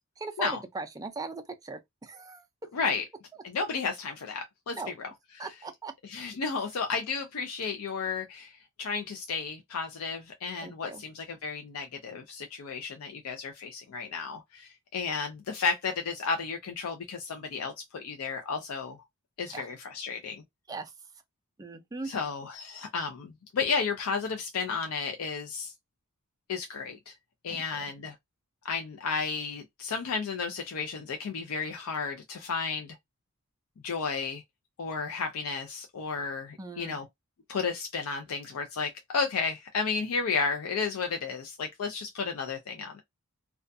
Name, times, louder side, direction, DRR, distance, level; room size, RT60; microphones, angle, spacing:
voice 1, 0.2-2.4 4.7-4.9 5.4-5.9 10.6-11.0 19.4-19.7 20.7-20.9 21.6-22.1 27.5-27.6 36.6-37.0, right 3 dB, 15° right, 0.3 m, -39 dB
voice 2, 2.7-3.0 3.4-5.1 5.4-5.5 6.0-8.5 8.8-19.0 19.4-20.4 22.0-25.7 26.5-27.1 27.4-28.1 28.6-33.0 33.8-34.4 34.8-37.0 37.5-43.0, left 5 dB, 70° left, 0.4 m, -33 dB
2.3 x 2.2 x 2.5 m
head